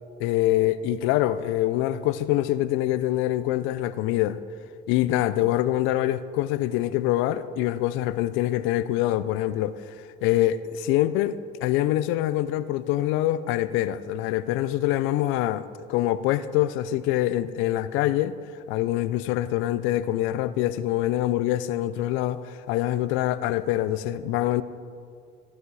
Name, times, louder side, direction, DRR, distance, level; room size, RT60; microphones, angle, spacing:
voice 1, 0.2-4.4 4.9-9.8 10.2-18.4 18.7-24.6, left 14 dB, 80° left, 0.6 m, -25 dB
15.0 x 11.0 x 4.8 m
supercardioid pair, 95°, 20 cm